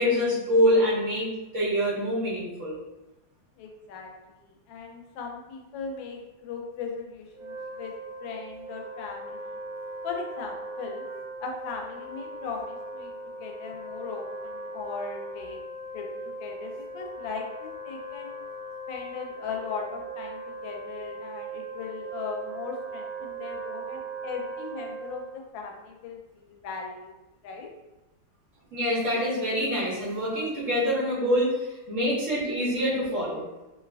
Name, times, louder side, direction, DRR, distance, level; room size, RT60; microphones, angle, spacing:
voice 1, 0.0-2.8 28.7-33.4, equal, 50° right, -8 dB, 1.0 m, -25 dB
voice 2, 3.6-9.6 10.0-11.0 11.4-15.6 15.9-18.3 18.9-27.7, left 5 dB, 80° left, 1 dB, 1.3 m, -38 dB
Wind instrument woodwind instrument, 7.3-25.4, right 2 dB, 85° right, 1.4 m, -39 dB
3.2 x 2.6 x 2.2 m, 1.0 s
omnidirectional pair, 2.1 m